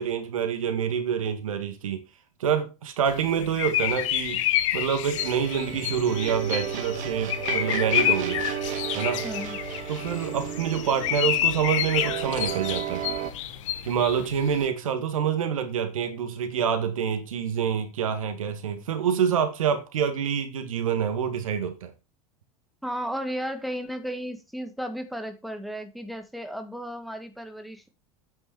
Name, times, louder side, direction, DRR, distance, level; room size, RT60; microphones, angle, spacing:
voice 1, 0.0-2.0 2.4-4.4 4.7-8.4 8.9-9.2 9.9-13.1 13.8-21.9, right 8 dB, 70° right, 2.1 m, -27 dB
sound 1, 3.1-14.7, left 13 dB, 60° left, 1.2 m, -29 dB
sound 2, 5.2-13.3, right 11 dB, 45° right, 2.5 m, -34 dB
sound 3, 5.7-18.7, right 1 dB, 25° right, 2.9 m, -45 dB
voice 2, 9.2-9.6 22.8-27.9, equal, ahead, 1.7 m, -34 dB
9.5 x 8.9 x 4.7 m
figure-of-eight pair, 80°, 18 cm